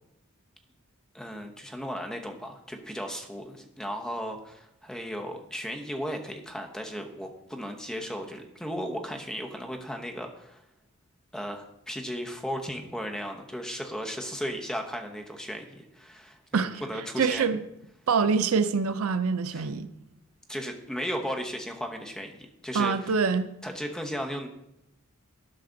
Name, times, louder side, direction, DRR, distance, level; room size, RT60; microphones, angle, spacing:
voice 1, 1.1-10.6 11.3-17.5 19.5-19.7 20.5-23.1 23.6-24.5, equal, 5° left, 0.9 m, -35 dB
voice 2, 16.5-17.6 18.1-19.9 22.7-23.5, right 5 dB, 80° right, 0.5 m, -25 dB
11.5 x 5.7 x 3.9 m
head